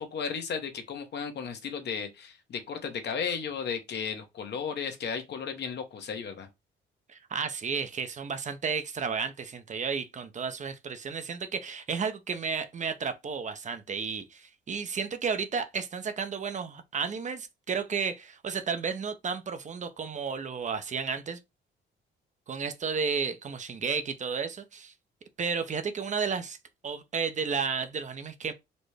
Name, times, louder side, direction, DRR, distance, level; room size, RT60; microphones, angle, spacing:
voice 1, 0.0-6.5, left 6 dB, 60° left, 0.9 m, -34 dB
voice 2, 7.1-21.4 22.5-24.9 25.4-26.6 26.8-28.5, right 5 dB, 40° right, 0.6 m, -32 dB
4.1 x 2.1 x 3.2 m
cardioid pair, 90°, 20 cm